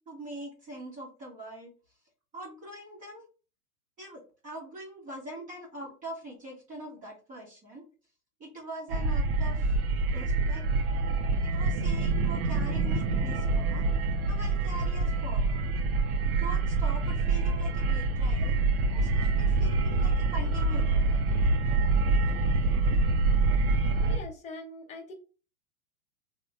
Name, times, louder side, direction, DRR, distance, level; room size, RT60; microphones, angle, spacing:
voice 1, 0.1-1.7 2.3-3.3 4.0-7.8 8.4-9.8 10.1-10.6 11.4-13.8 14.3-15.6 16.4-18.6 18.9-21.2, right 1 dB, 15° right, -4 dB, 0.9 m, -43 dB
sound 1, 8.9-24.2, right 3 dB, 40° right, 0.5 m, -26 dB
voice 2, 24.1-25.1, left 2 dB, 15° left, 1 dB, 0.7 m, -42 dB
3.5 x 2.2 x 3.2 m, 0.35 s
figure-of-eight pair, 100°, 47 cm